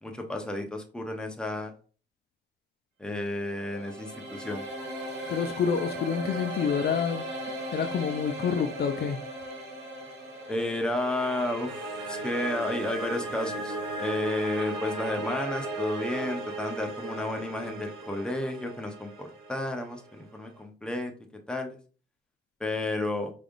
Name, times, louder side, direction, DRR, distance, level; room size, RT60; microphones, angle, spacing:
voice 1, 0.0-1.7 3.0-4.6 10.5-21.1 21.5-21.8 22.6-23.3, left 1 dB, 5° left, 0.9 m, -32 dB
sound 1, 3.3-20.4, right 1 dB, 65° right, 2.1 m, -37 dB
voice 2, 5.3-7.2 7.7-9.2, left 7 dB, 50° left, 0.5 m, -28 dB
4.9 x 3.4 x 2.5 m
cardioid pair, 90°, 20 cm